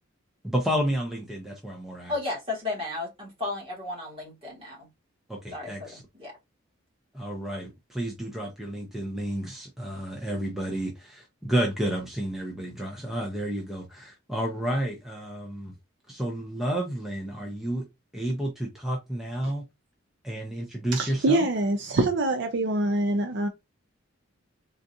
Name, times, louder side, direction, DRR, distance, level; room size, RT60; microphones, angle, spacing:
voice 1, 0.4-2.1 5.3-6.0 7.1-15.7 16.1-17.9 18.1-19.6 20.2-21.5, right 1 dB, ahead, 0.5 m, -31 dB
voice 2, 2.1-4.9 5.5-6.3, left 2 dB, 25° right, 1.5 m, -34 dB
voice 3, 20.9-23.5, right 2 dB, 55° right, 0.4 m, -25 dB
3.7 x 2.4 x 2.6 m
head